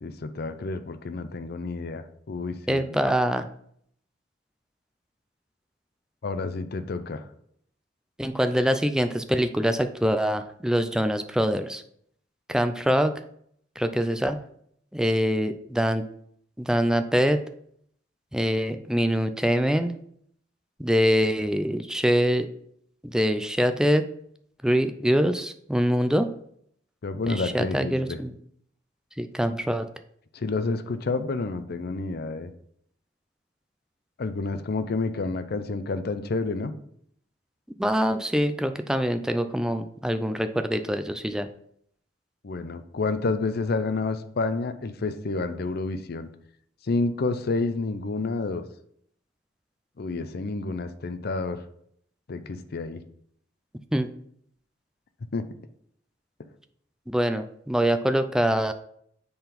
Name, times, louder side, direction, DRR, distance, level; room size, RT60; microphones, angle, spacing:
voice 1, 0.0-3.0 6.2-7.2 27.0-28.2 30.3-32.5 34.2-36.7 42.4-46.3 46.8-48.6 50.0-51.6 52.3-53.0 55.3-55.5, left 3 dB, 55° left, 10 dB, 0.5 m, -29 dB
voice 2, 2.7-3.5 8.2-11.8 12.5-13.1 13.8-14.4 14.9-16.1 16.6-17.4 18.3-19.9 20.8-22.5 23.0-24.0 24.6-26.3 27.3-28.3 29.2-29.9 37.8-41.5 53.9-54.1 57.1-58.7, equal, 5° right, 8 dB, 0.4 m, -24 dB
6.9 x 3.9 x 5.2 m, 0.68 s
head